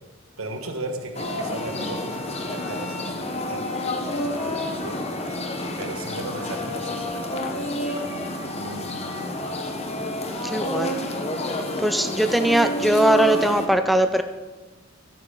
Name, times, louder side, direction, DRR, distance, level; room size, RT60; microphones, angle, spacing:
voice 1, 0.4-5.1 5.8-9.5, right 2 dB, 90° right, 5 dB, 1.3 m, -37 dB
sound 1, 1.1-13.7, left 1 dB, 30° left, 0.9 m, -29 dB
voice 2, 10.4-11.0 11.8-14.2, right 1 dB, ahead, 8 dB, 0.4 m, -20 dB
12.0 x 9.6 x 3.8 m, 1.3 s
head